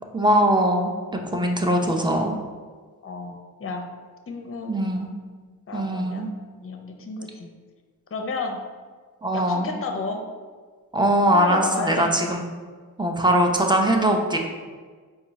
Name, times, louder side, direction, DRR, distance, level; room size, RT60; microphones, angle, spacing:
voice 1, 0.1-2.4 4.7-5.1 5.7-6.3 9.2-9.7 10.9-12.4 13.0-14.4, right 1 dB, 10° right, 2 dB, 0.6 m, -21 dB
voice 2, 3.0-4.0 4.3-4.8 5.7-6.3 6.6-7.5 8.1-8.6 9.3-10.2 11.3-12.1 13.1-13.3, left 3 dB, 35° left, 4 dB, 0.6 m, -32 dB
4.4 x 2.4 x 4.0 m, 1.5 s
cardioid pair, 50°, 36 cm